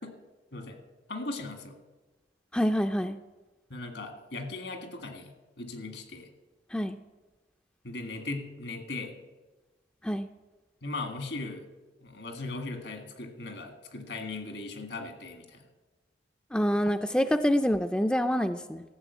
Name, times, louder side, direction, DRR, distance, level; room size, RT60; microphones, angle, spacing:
voice 1, 1.1-1.8 3.7-6.3 7.8-9.1 10.8-11.7 12.0-15.6, left 2 dB, 75° left, 5 dB, 1.8 m, -38 dB
voice 2, 2.5-3.2 6.7-7.0 10.0-10.3 16.5-18.8, equal, 5° left, 7 dB, 0.3 m, -26 dB
14.0 x 6.8 x 8.2 m, 1.2 s
head